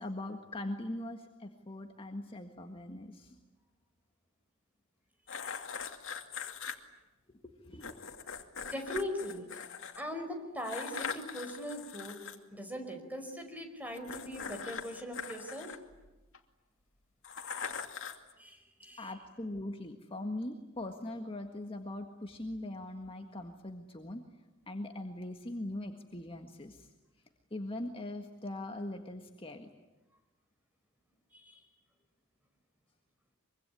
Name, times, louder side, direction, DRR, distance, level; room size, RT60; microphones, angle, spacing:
voice 1, 0.0-3.4 6.5-6.6 7.3-8.1 19.0-24.2 24.7-26.9 27.5-29.7, left 1 dB, 25° left, 4 dB, 1.7 m, -41 dB
sound 1, 5.3-6.8 7.8-10.0 10.6-12.4 13.9-16.4 17.2-18.3, left 6 dB, 65° left, 2.5 m, -41 dB
voice 2, 8.6-9.6 10.0-12.2 12.5-15.7 18.4-19.2 31.3-31.6, equal, 10° right, 5 dB, 5.0 m, -40 dB
24.5 x 24.5 x 9.8 m, 1.1 s
head